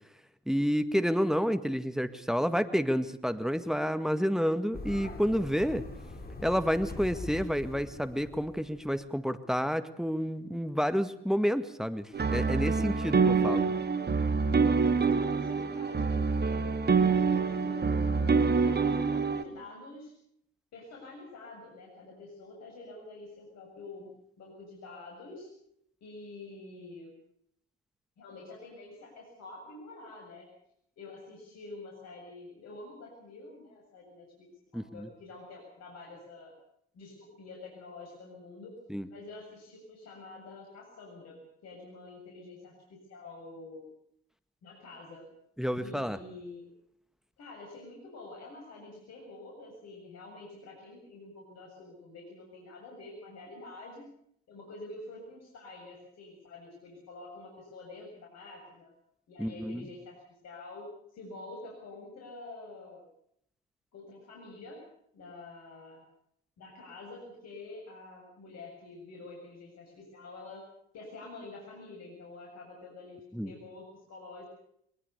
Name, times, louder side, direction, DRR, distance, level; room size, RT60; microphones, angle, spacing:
voice 1, 0.5-5.8 6.4-13.7 34.7-35.1 38.9-39.1 45.6-46.2 59.4-59.9 73.3-73.5, equal, ahead, 11 dB, 1.9 m, -29 dB
sound 1, 4.7-9.0, left 2 dB, 30° left, 6.9 m, -43 dB
sound 2, 12.1-19.4, right 4 dB, 35° right, 2.5 m, -26 dB
voice 2, 15.1-16.7 17.1-20.1 20.7-24.1 24.4-25.5 26.0-27.1 28.2-30.5 31.0-34.5 34.7-36.5 36.9-38.7 39.1-43.8 44.6-45.2 45.8-46.7 47.4-54.0 54.5-58.9 59.3-60.2 60.4-63.0 63.9-64.8 65.1-66.0 66.6-70.6 70.9-74.5, left 2 dB, 60° left, 0 dB, 7.5 m, -47 dB
23.5 x 20.5 x 6.8 m, 0.71 s
hypercardioid pair, 55°, 29 cm